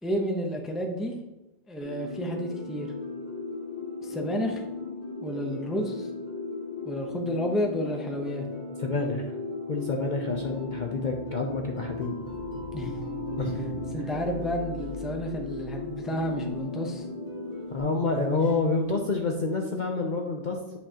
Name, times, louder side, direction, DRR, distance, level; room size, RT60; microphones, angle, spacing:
voice 1, 0.0-1.1 1.7-2.9 4.0-4.6 5.2-6.1 6.8-8.5 12.7-13.0 13.9-17.1, equal, ahead, 2 dB, 0.6 m, -31 dB
sound 1, 1.8-17.8, left 3 dB, 50° right, 2.8 m, -36 dB
voice 2, 8.8-9.3 9.7-12.1 13.4-13.6 17.7-20.8, left 3 dB, 45° left, 1 dB, 0.7 m, -28 dB
sound 2, 10.3-14.3, left 2 dB, 85° left, 1.2 m, -49 dB
sound 3, 12.2-18.6 19.1-19.2, right 1 dB, 75° right, 2.8 m, -42 dB
8.7 x 5.4 x 2.9 m, 1.0 s
omnidirectional pair, 1.3 m